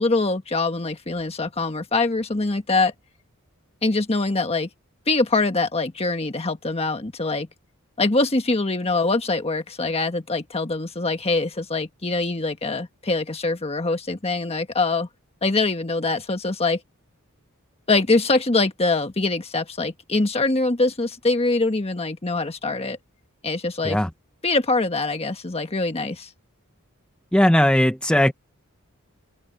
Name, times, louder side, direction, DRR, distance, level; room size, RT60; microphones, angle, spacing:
voice 1, 0.0-2.9 3.8-4.7 5.1-7.5 8.0-15.1 15.4-16.8 17.9-23.0 23.4-24.0 24.4-26.3, left 3 dB, 30° left, 1.4 m, -23 dB
voice 2, 27.3-28.3, left 1 dB, 5° left, 1.1 m, -18 dB
open air
head